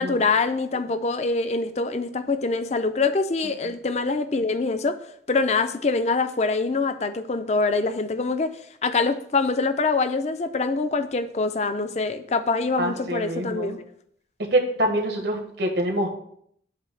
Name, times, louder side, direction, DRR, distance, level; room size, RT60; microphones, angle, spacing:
voice 1, 0.0-5.0 5.3-13.8, left 3 dB, 40° left, 10 dB, 0.5 m, -24 dB
voice 2, 12.8-13.7 14.5-16.1, right 1 dB, 70° right, 3 dB, 1.2 m, -25 dB
8.2 x 2.8 x 6.1 m, 0.68 s
head